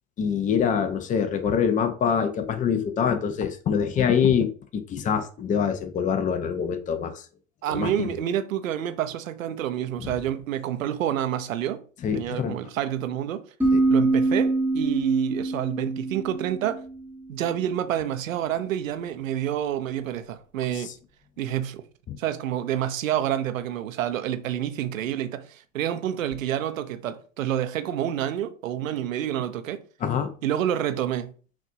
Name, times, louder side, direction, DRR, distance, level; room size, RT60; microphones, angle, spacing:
voice 1, 0.2-7.2 7.7-8.1 10.0-10.1 12.0-12.6 13.7-13.8 22.1-22.2 30.0-30.3, left 7 dB, 20° left, 0.5 m, -25 dB
voice 2, 7.6-11.8 12.1-13.5 13.9-16.8 17.3-20.9 21.4-21.8 22.2-29.8 30.4-31.3, right 11 dB, 80° right, 0.7 m, -28 dB
sound 1, 13.6-17.2, right 2 dB, 5° right, 1.1 m, -25 dB
5.9 x 2.5 x 2.7 m
hypercardioid pair, 95°, 39 cm